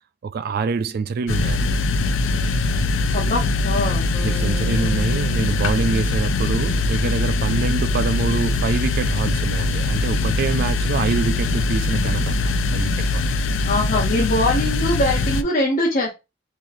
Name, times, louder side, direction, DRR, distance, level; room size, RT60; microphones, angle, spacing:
voice 1, 0.2-1.7 4.2-13.2, right 5 dB, 50° right, 0.3 m, -25 dB
sound 1, 1.3-15.4, left 3 dB, 80° left, 0.4 m, -22 dB
voice 2, 3.1-4.0 13.6-16.1, left 1 dB, 45° left, 0.8 m, -22 dB
Bass guitar, 4.1-8.2, left 3 dB, 10° left, 0.8 m, -40 dB
4.0 x 3.0 x 2.6 m
head